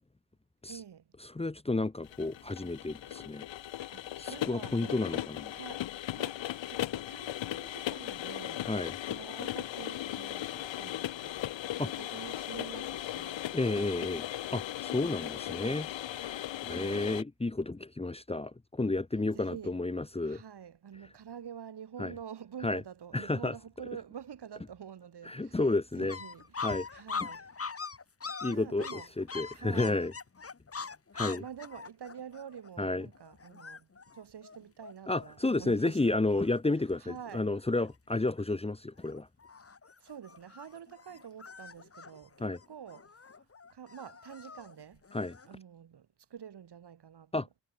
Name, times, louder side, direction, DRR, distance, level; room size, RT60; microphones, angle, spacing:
voice 1, 0.7-1.1 3.9-5.0 5.5-5.9 6.1-8.7 9.1-11.5 11.8-13.5 15.5-15.8 16.5-17.0 19.3-19.8 20.2-25.7 25.9-26.5 26.9-27.7 28.5-29.1 29.5-30.0 31.1-36.2 37.0-37.5 40.0-43.5 43.7-45.0 45.4-47.5, right 8 dB, 60° right, 8.0 m, -47 dB
voice 2, 1.3-3.5 4.2-5.6 8.7-8.9 11.8-11.9 13.5-14.2 14.5-15.9 16.2-20.4 22.0-22.1 22.6-22.8 23.1-23.5 25.2-26.1 26.6-26.9 28.4-28.9 29.2-30.1 31.1-31.4 32.8-33.1 35.1-39.3 42.4-42.6 45.1-45.4 47.3-47.5, left 2 dB, 15° left, 1.5 m, -31 dB
sound 1, 2.0-17.2, left 13 dB, 75° left, 1.0 m, -37 dB
sound 2, 26.1-35.5 36.0-36.1 36.3-37.0 37.2-37.9 38.4-38.7 39.0-45.6, left 5 dB, 30° left, 4.5 m, -43 dB
wide cardioid pair, 155°, 45 cm